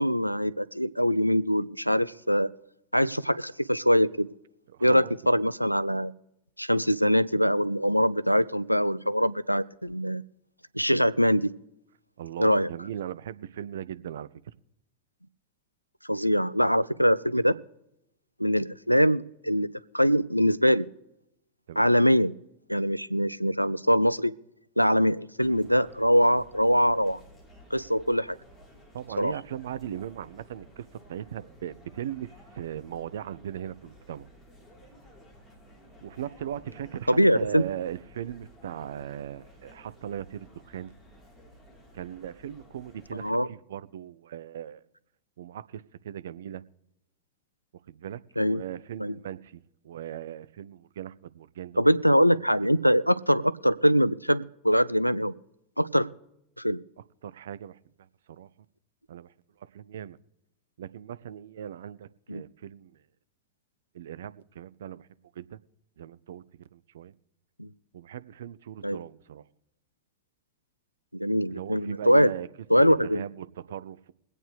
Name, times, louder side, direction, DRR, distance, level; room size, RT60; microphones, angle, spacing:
voice 1, 0.0-2.5 2.9-4.3 4.8-6.1 6.6-10.2 10.7-11.5 12.4-12.7 16.1-17.6 18.4-19.7 19.9-20.9 21.8-22.3 22.7-24.3 24.8-27.2 27.7-28.4 29.2-29.3 37.1-37.6 43.2-43.5 48.4-48.6 49.0-49.1 51.8-55.3 55.8-56.1 56.6-56.8 62.3-62.4 67.6-67.7 68.8-69.0 71.1-72.3 72.7-73.2, equal, 90° left, 0.4 m, -23 dB
voice 2, 4.7-5.1 12.2-14.5 21.7-21.9 28.9-34.3 36.0-40.9 41.9-44.8 45.4-46.6 47.9-51.8 52.3-52.8 57.2-57.8 58.3-58.5 59.1-60.2 60.8-63.0 63.9-65.1 65.3-65.6 66.0-67.1 67.9-69.4 71.5-72.5 72.9-74.1, right 10 dB, 60° right, 0.5 m, -39 dB
sound 1, 25.4-43.3, equal, 5° left, 3.8 m, -54 dB
23.0 x 8.7 x 3.3 m
figure-of-eight pair, 90°, 0 cm